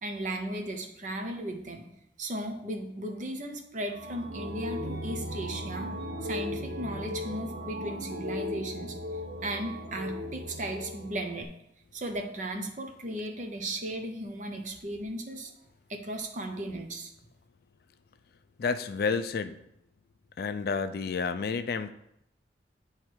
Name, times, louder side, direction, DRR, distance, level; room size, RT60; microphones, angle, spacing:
voice 1, 0.0-1.9 2.2-5.9 6.2-9.0 9.4-11.5 11.9-15.5 15.9-17.1, right 1 dB, 45° right, 4 dB, 0.8 m, -36 dB
sound 1, 3.9-11.4, left 1 dB, 85° right, 0.8 m, -37 dB
voice 2, 18.6-19.6 20.4-21.9, left 5 dB, 55° left, 11 dB, 0.3 m, -30 dB
8.6 x 3.2 x 4.6 m, 0.78 s
head